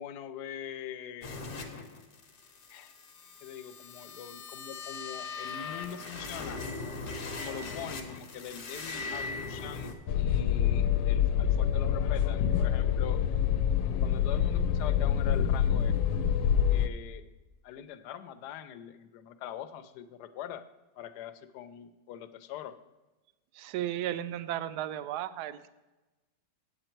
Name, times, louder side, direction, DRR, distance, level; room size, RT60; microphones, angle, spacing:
voice 1, 0.0-1.4 2.7-2.9 3.4-6.6 7.4-13.2 14.0-15.9 16.7-17.2 17.6-20.6 21.0-22.7, left 9 dB, 70° left, 12 dB, 1.1 m, -43 dB
sound 1, 1.2-9.9, left 4 dB, 45° left, 1.1 m, -40 dB
sound 2, 10.1-16.9, left 9 dB, 90° left, 1.3 m, -26 dB
voice 2, 23.5-25.7, right 12 dB, 70° right, 13 dB, 1.0 m, -34 dB
8.9 x 7.8 x 4.5 m, 1.1 s
omnidirectional pair, 2.0 m